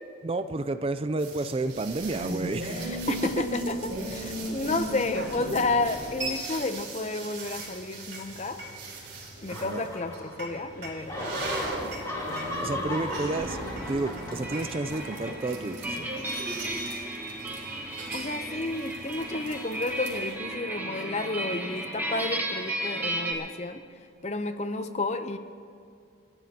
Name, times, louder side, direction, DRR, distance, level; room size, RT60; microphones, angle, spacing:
voice 1, 0.2-2.8 3.2-3.5 9.5-9.9 12.6-13.6 13.9-16.1, right 2 dB, 30° right, 11 dB, 0.4 m, -31 dB
sound 1, 1.2-20.3, right 1 dB, 60° right, 3.9 m, -38 dB
voice 2, 2.6-8.6 9.4-11.3 18.1-23.8 24.2-25.4, left 2 dB, 35° left, 9 dB, 0.7 m, -31 dB
sound 2, 9.5-10.6 10.9-15.9, left 1 dB, 20° left, 2.1 m, -37 dB
sound 3, 13.3-23.3, right 1 dB, 10° right, 1.5 m, -35 dB
28.5 x 14.5 x 2.9 m, 2.5 s
head